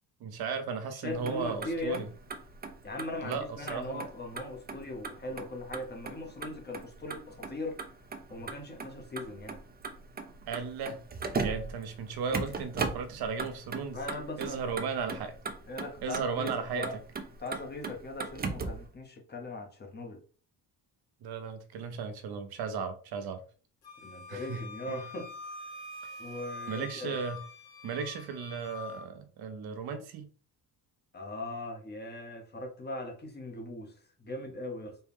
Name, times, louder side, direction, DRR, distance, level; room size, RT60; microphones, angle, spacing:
voice 1, 0.2-2.1 3.2-4.0 10.5-11.0 11.4-14.0 14.4-15.4 16.0-17.0 21.2-23.4 24.3-25.1 26.7-27.4 27.8-30.3, right 5 dB, 70° right, 0.8 m, -36 dB
voice 2, 0.9-2.2 2.8-7.8 8.3-9.6 13.9-14.8 15.1-15.2 15.7-17.0 17.4-20.2 24.0-25.3 26.2-27.2 31.1-33.9 34.2-35.0, left 2 dB, 25° left, 0.9 m, -39 dB
Motor vehicle (road), 1.1-18.9, right 4 dB, 25° right, 0.5 m, -39 dB
Wind instrument woodwind instrument, 23.8-29.0, left 3 dB, 75° left, 1.7 m, -45 dB
4.3 x 2.3 x 3.5 m
cardioid pair, 115°, 39 cm